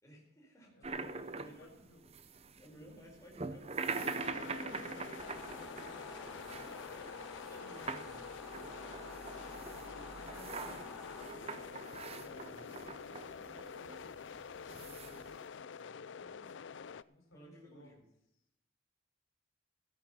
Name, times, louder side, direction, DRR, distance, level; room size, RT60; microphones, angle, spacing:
voice 1, 0.0-1.8 2.6-4.1 6.9-7.1 7.5-8.3 12.0-12.7 17.3-18.0, equal, 15° left, -3 dB, 4.6 m, -56 dB
voice 2, 0.7-2.0 4.6-7.0 9.9-10.9 12.4-14.2 14.5-16.6 17.0-18.0, left 1 dB, 85° left, 2 dB, 3.9 m, -60 dB
sound 1, 0.8-15.5, right 4 dB, 30° right, 0.7 m, -44 dB
sound 2, 4.0-17.0, left 6 dB, 65° left, 0.4 m, -48 dB
sound 3, 5.2-11.2, left 2 dB, 5° right, 3.2 m, -51 dB
16.0 x 9.0 x 5.6 m, 0.78 s
head